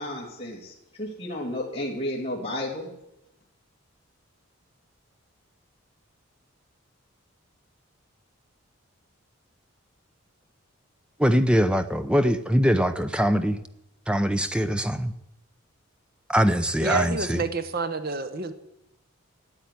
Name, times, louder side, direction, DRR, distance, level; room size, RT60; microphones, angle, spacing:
voice 1, 0.0-2.9, left 1 dB, 25° left, 2.8 m, -32 dB
voice 2, 11.2-13.6 14.1-15.1 16.3-17.4, equal, 5° right, 0.6 m, -22 dB
voice 3, 16.8-18.5, right 3 dB, 45° right, 1.0 m, -28 dB
13.0 x 8.7 x 9.5 m
head